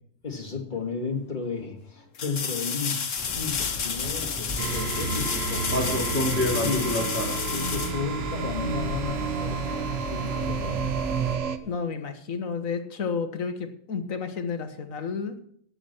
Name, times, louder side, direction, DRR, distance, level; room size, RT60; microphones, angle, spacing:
voice 1, 0.2-3.1 3.3-7.0 7.5-11.0, left 5 dB, 35° left, 2 dB, 2.5 m, -34 dB
sound 1, 0.8-0.9 2.1-8.8 11.6-11.7, left 6 dB, 70° left, 1.6 m, -31 dB
sound 2, 3.2-11.4, left 1 dB, 10° left, 3.4 m, -32 dB
sound 3, 4.6-11.6, right 6 dB, 75° right, 1.4 m, -30 dB
voice 2, 11.6-15.4, left 5 dB, 90° left, 8 dB, 1.7 m, -31 dB
14.0 x 10.0 x 4.5 m, 0.65 s
omnidirectional pair, 1.3 m